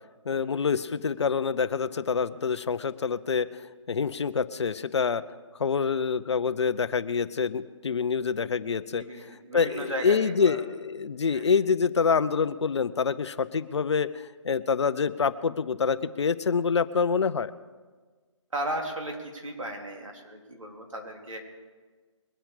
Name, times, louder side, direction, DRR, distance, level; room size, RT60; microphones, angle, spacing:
voice 1, 0.3-5.2 5.6-17.5, left 5 dB, 60° left, 14 dB, 0.7 m, -26 dB
voice 2, 9.0-10.6 11.3-11.5 18.5-21.4, right 1 dB, 85° right, 1 dB, 3.6 m, -35 dB
22.0 x 9.0 x 5.0 m, 1.4 s
figure-of-eight pair, 155°, 16 cm